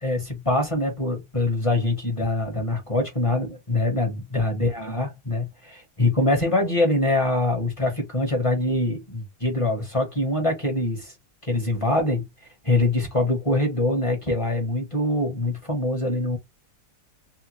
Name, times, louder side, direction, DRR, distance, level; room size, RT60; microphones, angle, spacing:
voice 1, 0.0-11.1 11.4-12.2 12.6-16.4, left 2 dB, 25° left, 0.7 m, -24 dB
3.6 x 2.2 x 2.9 m
omnidirectional pair, 2.1 m